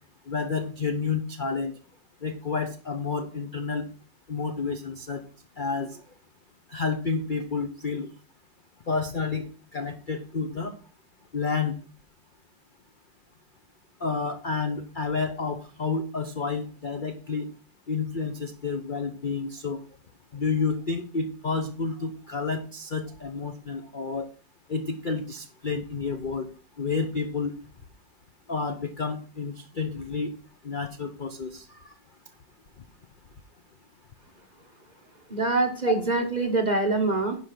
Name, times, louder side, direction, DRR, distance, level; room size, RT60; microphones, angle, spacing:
voice 1, 0.3-1.7 2.2-3.8 4.3-5.2 5.6-6.0 6.7-8.1 8.9-9.5 9.7-10.7 11.3-11.7 14.0-17.5 17.9-19.8 20.3-24.3 24.7-26.5 26.8-27.5 28.5-30.3 30.6-31.9 35.9-36.0, left 4 dB, 45° left, 7 dB, 0.6 m, -30 dB
voice 2, 35.3-37.4, right 3 dB, 30° right, 5 dB, 1.1 m, -24 dB
10.5 x 5.3 x 5.8 m, 0.39 s
omnidirectional pair, 2.0 m